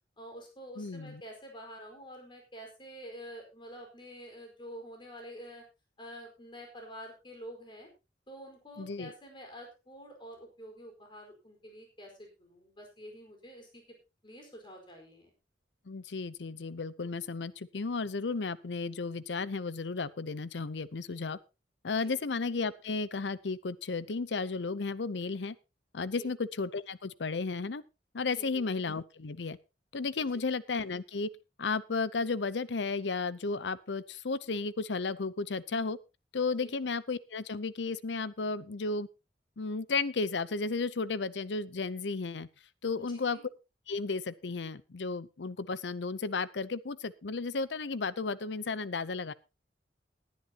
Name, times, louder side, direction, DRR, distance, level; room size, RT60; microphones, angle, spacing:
voice 1, 0.2-5.6 6.0-7.9 8.3-13.8 14.2-15.3 22.0-22.2 26.1-26.3 28.3-28.7 30.3-30.4 36.6-36.7 43.0-43.4, equal, 30° left, 2 dB, 4.7 m, -48 dB
voice 2, 0.8-1.2 8.8-9.1 15.9-21.4 21.8-25.6 25.9-27.8 28.1-29.6 29.9-31.3 31.6-36.0 36.3-39.1 39.6-42.5 42.8-43.4 43.9-49.3, left 4 dB, 90° left, 18 dB, 0.7 m, -33 dB
19.5 x 10.5 x 2.9 m, 0.27 s
head